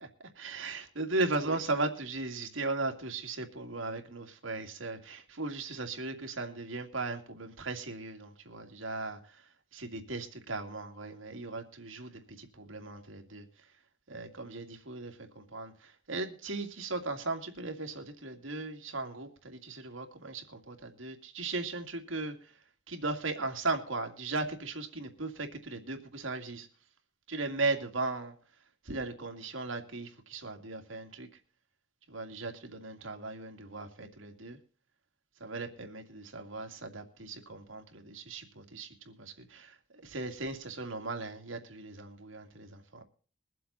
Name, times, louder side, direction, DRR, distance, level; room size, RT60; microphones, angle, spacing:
voice 1, 0.4-9.4 9.7-13.5 14.1-22.5 22.9-26.7 27.3-28.3 28.8-31.3 32.1-34.6 35.4-39.8 40.0-43.0, right 3 dB, 75° right, 5 dB, 2.4 m, -37 dB
22.5 x 7.7 x 4.1 m, 0.40 s
head